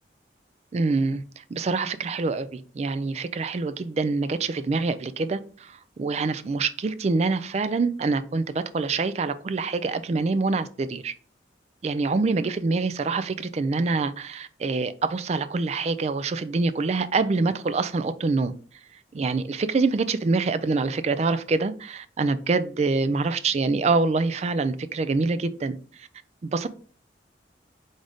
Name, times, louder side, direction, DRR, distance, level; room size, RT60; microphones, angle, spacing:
voice 1, 0.7-11.1 11.8-18.5 19.1-26.1 26.4-26.7, right 3 dB, 35° right, 0.3 m, -25 dB
3.9 x 3.8 x 3.4 m
head